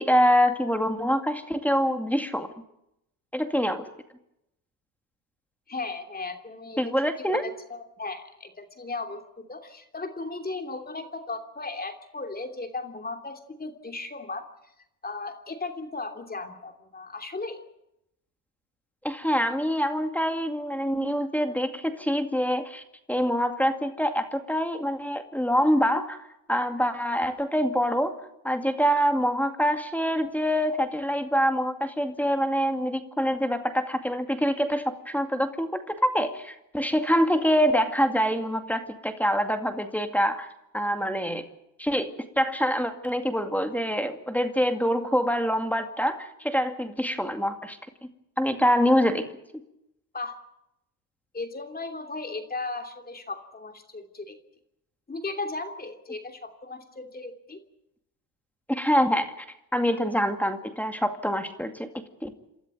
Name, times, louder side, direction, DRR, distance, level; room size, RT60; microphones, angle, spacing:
voice 1, 0.0-2.5 3.3-3.9 6.8-7.4 19.0-22.8 23.1-26.2 26.5-28.2 28.4-40.5 40.7-41.5 41.8-47.8 48.4-49.3 58.7-59.3 59.7-61.9 62.2-62.3, equal, 5° left, 7 dB, 2.2 m, -25 dB
voice 2, 5.7-6.9 7.3-14.5 15.0-17.6 50.1-50.4 51.3-54.3 55.1-57.6, left 3 dB, 20° left, 6 dB, 3.0 m, -36 dB
28.5 x 13.5 x 9.1 m, 0.84 s
supercardioid pair, 90°, 47 cm